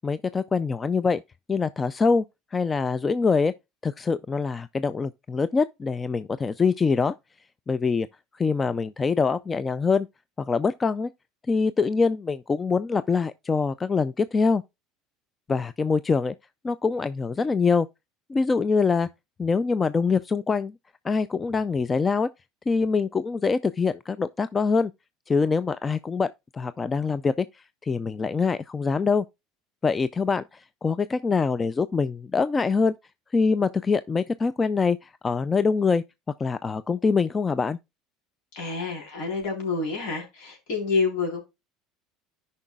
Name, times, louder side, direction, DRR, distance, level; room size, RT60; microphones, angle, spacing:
voice 1, 0.0-1.2 1.5-2.2 2.5-3.5 3.8-7.1 7.7-8.1 8.3-10.1 10.4-11.1 11.5-14.6 15.5-16.3 16.6-17.9 18.3-19.1 19.4-20.7 21.0-22.3 22.7-24.9 25.3-26.3 26.5-29.2 29.8-32.9 33.3-36.0 36.4-37.8, left 4 dB, 25° left, 0.4 m, -24 dB
voice 2, 38.5-41.4, left 4 dB, 65° left, 3.9 m, -28 dB
13.5 x 5.4 x 2.3 m
hypercardioid pair, 80°, 0 cm